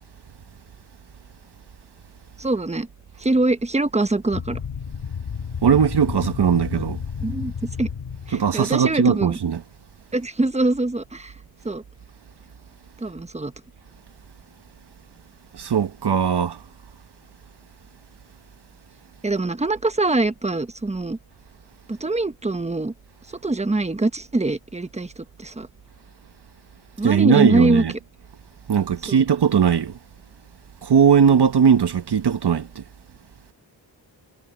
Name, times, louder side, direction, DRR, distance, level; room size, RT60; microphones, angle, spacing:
voice 1, 2.4-2.9 3.2-4.6 7.2-7.9 8.3-9.4 10.1-11.3 11.6-11.8 13.0-13.5 19.2-21.2 21.9-22.9 23.3-25.7 27.0-27.8 29.1-29.2 31.2-31.4, right 2 dB, 15° right, 1.2 m, -23 dB
sound 1, 4.3-8.6, left 6 dB, 85° left, 5.4 m, -31 dB
voice 2, 5.6-7.0 8.3-9.6 15.5-16.6 27.0-27.9 28.7-29.9 30.8-32.8, right 7 dB, 70° right, 1.4 m, -19 dB
wide cardioid pair, 90°, 42 cm